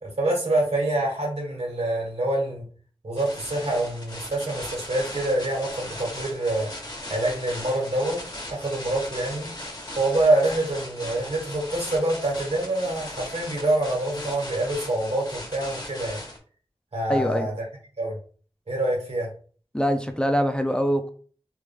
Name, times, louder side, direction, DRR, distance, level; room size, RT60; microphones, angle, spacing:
voice 1, 0.0-2.7 3.0-6.7 7.1-8.2 8.5-9.5 10.0-16.2 16.9-17.5 18.0-18.2 18.7-19.3, right 1 dB, 85° right, -2 dB, 1.6 m, -26 dB
sound 1, 3.2-16.4, left 1 dB, 40° left, 1.1 m, -38 dB
voice 2, 17.1-17.5 19.7-21.1, equal, 10° left, 6 dB, 0.5 m, -23 dB
3.3 x 2.6 x 3.4 m, 0.42 s
wide cardioid pair, 60°, 10 cm